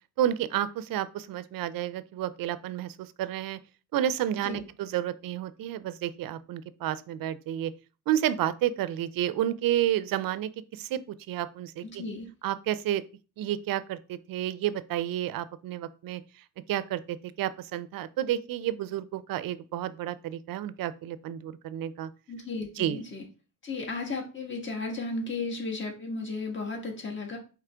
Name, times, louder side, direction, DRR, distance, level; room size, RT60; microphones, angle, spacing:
voice 1, 0.2-3.6 3.9-7.7 8.1-11.0 11.3-12.0 12.4-13.0 13.4-16.2 16.7-22.1 22.8-23.0, right 12 dB, 75° right, 0.5 m, -30 dB
voice 2, 11.8-12.3 22.3-23.2 23.6-27.4, left 3 dB, 35° left, 1.4 m, -34 dB
4.9 x 3.1 x 3.3 m
cardioid pair, 100°, 34 cm